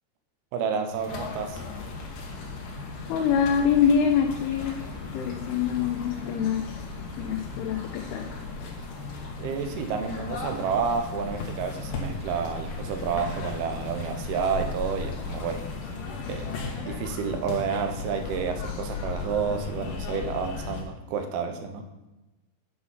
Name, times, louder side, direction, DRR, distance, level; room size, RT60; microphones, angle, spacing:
voice 1, 0.5-1.6 9.4-15.6 16.3-16.5 16.8-21.9, right 6 dB, 75° right, 6 dB, 2.7 m, -30 dB
Stream, 0.9-16.8, left 2 dB, 40° left, 2.5 m, -49 dB
sound 1, 1.1-20.8, left 4 dB, 70° left, 2.7 m, -36 dB
voice 2, 3.1-4.8 5.1-6.8 7.2-8.3, left 7 dB, 85° left, 1 dB, 2.6 m, -25 dB
9.9 x 4.7 x 5.6 m, 1.1 s
omnidirectional pair, 4.6 m